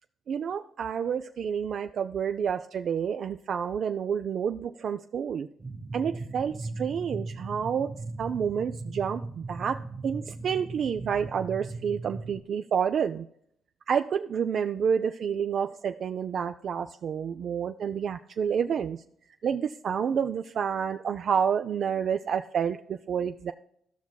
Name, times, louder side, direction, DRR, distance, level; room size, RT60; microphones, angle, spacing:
voice 1, 0.3-5.5 5.9-7.9 8.2-13.3 13.9-19.0 19.4-23.5, right 7 dB, 60° right, 7 dB, 0.4 m, -29 dB
sound 1, 5.6-12.4, right 3 dB, 25° right, 0.9 m, -38 dB
14.5 x 5.8 x 2.2 m, 0.69 s
cardioid pair, 90°, 0 cm